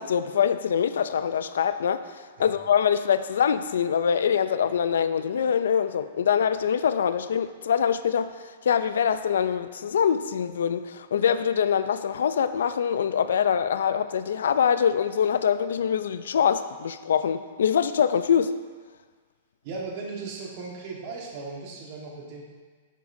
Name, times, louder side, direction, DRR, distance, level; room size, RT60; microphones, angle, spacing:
voice 1, 0.0-2.0 2.4-8.3 8.6-18.5, left 8 dB, 85° left, 12 dB, 0.4 m, -24 dB
voice 2, 19.6-22.4, right 4 dB, 40° right, -1 dB, 1.5 m, -37 dB
9.8 x 8.0 x 2.7 m, 1.5 s
hypercardioid pair, 165°, 0 cm